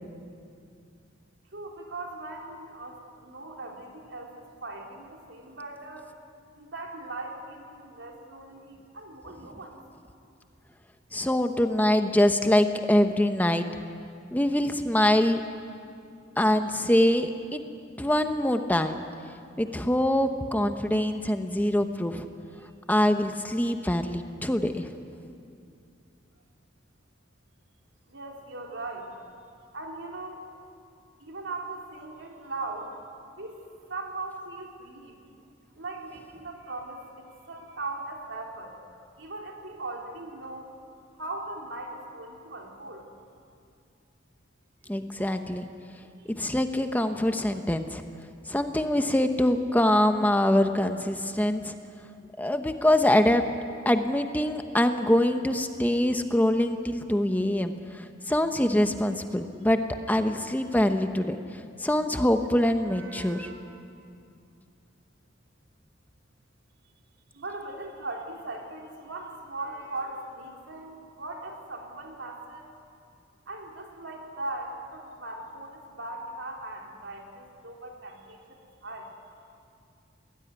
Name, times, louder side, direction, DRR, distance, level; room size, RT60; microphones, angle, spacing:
voice 1, 1.5-6.1 6.6-9.8 28.1-29.1 29.7-30.4 31.2-32.9 33.4-35.1 35.8-38.7 39.2-40.7 41.2-43.0 46.1-46.3 62.9-63.7 67.3-72.7 73.5-78.4 78.8-79.1, right 2 dB, 75° right, 1 dB, 3.7 m, -39 dB
voice 2, 11.1-13.7 14.3-15.4 16.4-17.6 18.0-19.0 19.6-22.3 22.9-24.9 44.9-45.7 46.4-48.0 48.5-51.7 52.4-53.4 53.8-59.8 60.1-61.4 61.8-63.5, left 1 dB, 10° left, 7 dB, 0.9 m, -24 dB
22.0 x 19.0 x 9.6 m, 2.4 s
head